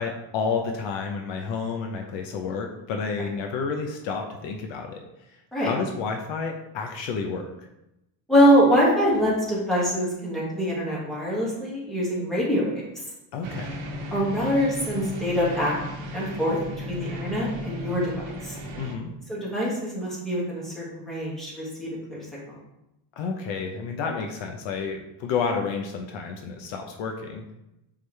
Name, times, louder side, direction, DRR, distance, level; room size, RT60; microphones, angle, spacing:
voice 1, 0.0-5.0 5.6-7.5 13.3-13.7 18.8-19.1 23.2-27.4, left 5 dB, 65° left, 3 dB, 0.9 m, -30 dB
voice 2, 8.3-12.7 12.9-13.0 14.1-15.7 16.1-18.1 18.4-18.6 19.3-22.6, equal, ahead, -7 dB, 2.0 m, -24 dB
sound 1, 13.4-19.0, equal, 65° right, 1.1 m, -35 dB
7.9 x 3.7 x 3.3 m, 0.90 s
cardioid pair, 160°, 49 cm